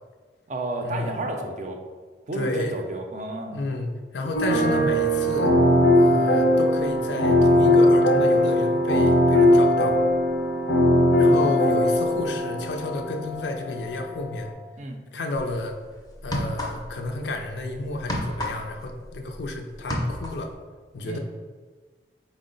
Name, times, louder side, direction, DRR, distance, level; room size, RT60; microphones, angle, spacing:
voice 1, 0.5-1.8 2.3-3.6 14.8-15.0 21.0-21.2, right 2 dB, 40° right, 3 dB, 0.4 m, -31 dB
voice 2, 2.3-2.8 3.5-5.5 6.0-10.0 11.2-14.5 15.1-15.8 16.2-20.5 20.9-21.2, left 2 dB, 75° left, 3 dB, 0.5 m, -31 dB
sound 1, 4.3-14.5, left 1 dB, 90° left, 0.9 m, -20 dB
sound 2, 15.5-15.6 16.2-17.1 17.3-19.5 19.7-20.5, left 1 dB, 20° left, 0.5 m, -30 dB
4.5 x 2.0 x 3.8 m, 1.4 s
head